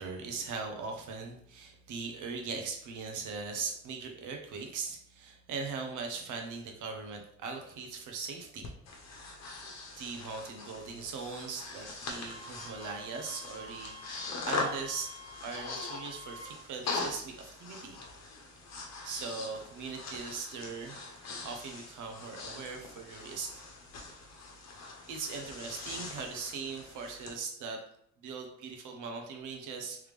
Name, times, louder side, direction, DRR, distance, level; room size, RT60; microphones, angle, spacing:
voice 1, 0.0-8.7 9.9-15.1 15.4-18.0 19.0-23.5 25.1-27.8 28.2-30.1, right 4 dB, 80° right, 4 dB, 0.9 m, -40 dB
Breathing, 8.6-27.3, left 3 dB, 60° left, 1.0 m, -42 dB
Wind instrument woodwind instrument, 12.3-16.5, left 2 dB, 20° right, 1.1 m, -49 dB
3.5 x 3.3 x 3.2 m, 0.71 s
cardioid pair, 90°, 30 cm